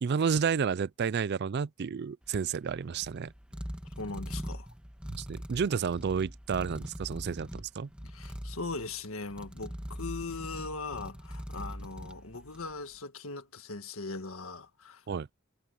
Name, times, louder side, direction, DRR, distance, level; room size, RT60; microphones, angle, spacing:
voice 1, 0.0-3.3 5.1-7.9 15.1-15.3, right 6 dB, 50° right, 0.4 m, -31 dB
sound 1, 2.2-12.8, equal, 5° right, 1.7 m, -42 dB
voice 2, 4.0-4.7 8.0-15.0, left 3 dB, 75° left, 1.7 m, -40 dB
head